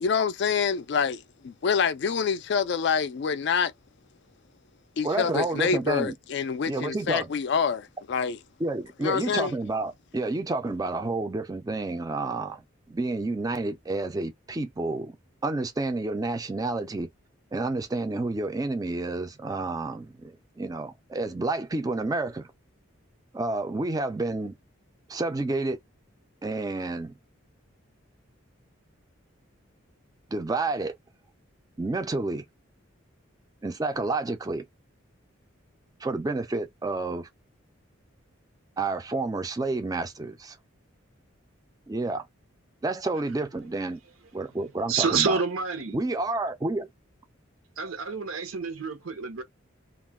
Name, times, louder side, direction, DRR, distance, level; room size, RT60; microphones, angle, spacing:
voice 1, 0.0-3.7 5.0-8.4 9.0-9.5, left 6 dB, 55° left, 0.3 m, -26 dB
voice 2, 5.0-6.1 6.7-7.3 8.6-12.6 12.9-15.2 15.4-17.1 17.5-22.5 23.3-24.5 25.1-25.8 26.4-27.1 30.3-30.9 31.8-32.4 33.6-34.6 36.0-37.3 38.8-40.6 41.9-42.3 42.8-44.0 44.3-45.4 45.9-46.9, right 2 dB, 20° right, 0.3 m, -29 dB
voice 3, 44.6-46.0 47.8-49.4, right 5 dB, 90° right, 0.7 m, -28 dB
2.3 x 2.1 x 3.4 m
head